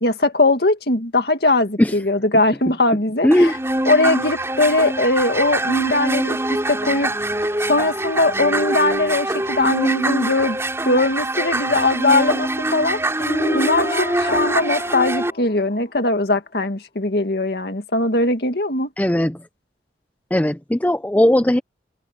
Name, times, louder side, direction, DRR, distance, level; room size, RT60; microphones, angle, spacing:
voice 1, 0.0-3.5 3.9-7.1 7.7-10.6 10.8-18.9, left 2 dB, 60° left, 2.1 m, -20 dB
voice 2, 3.2-3.5 19.0-19.4 20.3-21.6, left 1 dB, 10° left, 0.5 m, -17 dB
sound 1, 3.3-15.3, right 1 dB, 15° right, 5.2 m, -24 dB
sound 2, 13.2-16.2, left 2 dB, 45° left, 3.9 m, -29 dB
open air
head